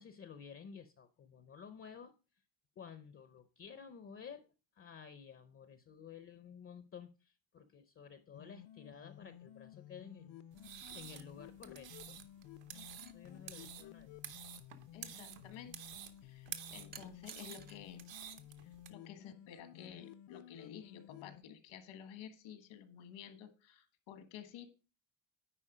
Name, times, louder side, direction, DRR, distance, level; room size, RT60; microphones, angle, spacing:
voice 1, 0.0-2.1 2.8-10.4 10.9-12.3 13.1-14.2, left 7 dB, 30° left, 10 dB, 0.5 m, -53 dB
sound 1, 8.3-21.4, left 12 dB, 70° left, 0.6 m, -55 dB
sound 2, 10.5-18.9, right 11 dB, 70° right, 1.0 m, -50 dB
sound 3, 12.9-13.2 16.9-17.8 19.2-19.4, right 6 dB, 25° right, 0.4 m, -54 dB
voice 2, 14.9-15.8 16.2-18.1 18.9-24.7, left 9 dB, 85° left, 9 dB, 1.5 m, -52 dB
10.0 x 4.3 x 4.9 m, 0.32 s
cardioid pair, 170°, 46 cm